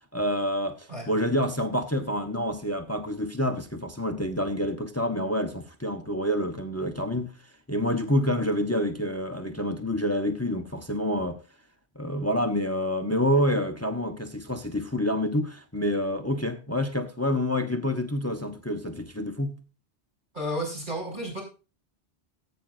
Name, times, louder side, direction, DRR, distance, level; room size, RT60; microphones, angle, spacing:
voice 1, 0.1-7.3 7.7-11.4 11.9-19.6, equal, 15° left, 1.2 m, -27 dB
voice 2, 20.3-21.4, equal, 50° right, 6.7 m, -32 dB
19.0 x 9.2 x 2.6 m
omnidirectional pair, 1.1 m